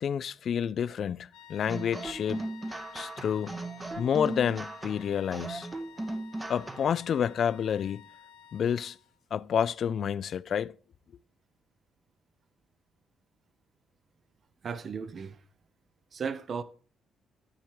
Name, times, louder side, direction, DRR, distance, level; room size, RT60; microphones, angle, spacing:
voice 1, 0.0-2.5 2.9-3.6 4.0-5.7 6.5-8.0 8.5-9.0 9.3-10.7, left 8 dB, 60° left, 0.3 m, -29 dB
sound 1, 1.3-9.2, left 10 dB, 85° left, 0.9 m, -53 dB
sound 2, 1.7-7.0, right 2 dB, 15° right, 0.7 m, -38 dB
voice 2, 14.6-15.4 16.1-16.6, right 6 dB, 50° right, 0.7 m, -35 dB
12.5 x 4.4 x 4.7 m
cardioid pair, 90°, 0 cm